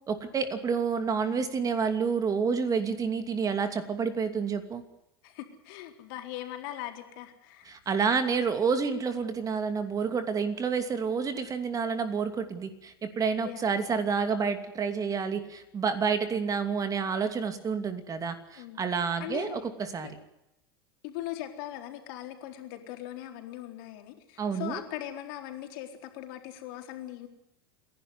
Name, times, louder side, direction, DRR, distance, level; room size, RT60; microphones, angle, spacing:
voice 1, 0.1-4.8 7.7-20.2 24.4-24.8, right 5 dB, 30° right, 9 dB, 2.7 m, -29 dB
voice 2, 5.2-7.7 13.4-13.7 18.6-18.9 19.2-19.6 20.0-20.1 21.0-27.3, left 13 dB, 65° left, 4 dB, 4.1 m, -40 dB
29.5 x 11.5 x 9.7 m, 0.88 s
hypercardioid pair, 100°, 12 cm